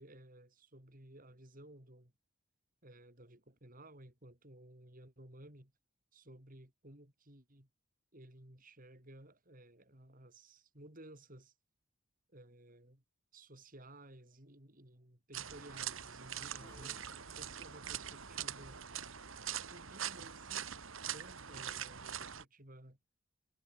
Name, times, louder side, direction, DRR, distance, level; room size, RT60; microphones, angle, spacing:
voice 1, 0.0-2.1 2.8-5.7 6.1-7.7 8.1-11.5 12.3-13.0 13.3-17.0 17.4-18.8 19.7-20.7 21.1-23.0, right 1 dB, 40° right, 4.4 m, -56 dB
sound 1, 15.3-22.4, right 9 dB, 65° right, 1.9 m, -43 dB
sound 2, 16.5-18.0, left 1 dB, 10° left, 2.4 m, -63 dB
head